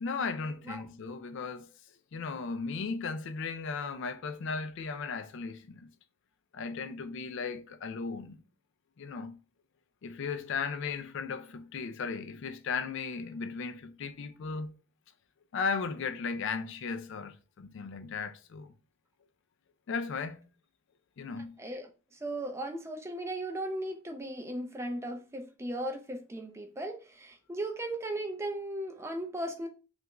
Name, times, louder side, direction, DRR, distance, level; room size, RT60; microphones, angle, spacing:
voice 1, 0.0-1.7 2.1-5.9 6.5-8.4 9.0-9.4 10.0-14.7 15.5-18.7 19.9-20.4 21.2-21.6, left 5 dB, 55° left, 0.4 m, -36 dB
voice 2, 21.6-29.7, right 1 dB, 10° right, 0.4 m, -37 dB
3.3 x 2.4 x 2.9 m
head